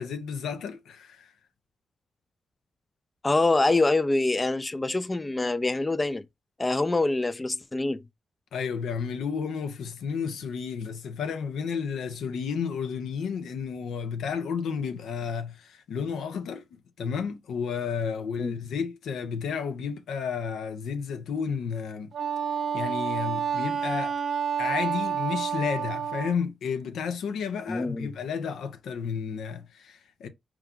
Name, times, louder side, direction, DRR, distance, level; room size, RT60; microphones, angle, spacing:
voice 1, 0.0-1.3 8.5-16.6 17.0-22.1 22.7-24.2 24.6-30.3, left 6 dB, 85° left, 0.7 m, -32 dB
voice 2, 3.2-6.3 6.6-8.0 18.4-18.5 27.7-28.1, left 2 dB, 25° left, 0.4 m, -25 dB
Wind instrument woodwind instrument, 22.1-26.4, right 7 dB, 65° right, 0.6 m, -29 dB
4.6 x 2.3 x 3.7 m
cardioid pair, 55°, 0 cm